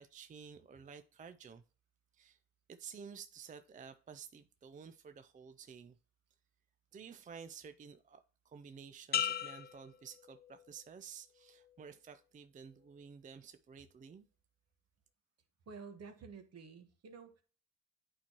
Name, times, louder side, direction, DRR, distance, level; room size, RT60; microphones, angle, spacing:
voice 1, 0.0-1.6 2.1-2.4 2.7-6.0 6.9-14.2, right 6 dB, 25° right, 0.4 m, -52 dB
sound 1, 9.1-10.9 11.4-11.9, left 9 dB, 35° left, 0.4 m, -38 dB
voice 2, 15.7-17.4, right 5 dB, 55° right, 1.3 m, -51 dB
8.6 x 4.5 x 2.9 m
cardioid pair, 90°, 30 cm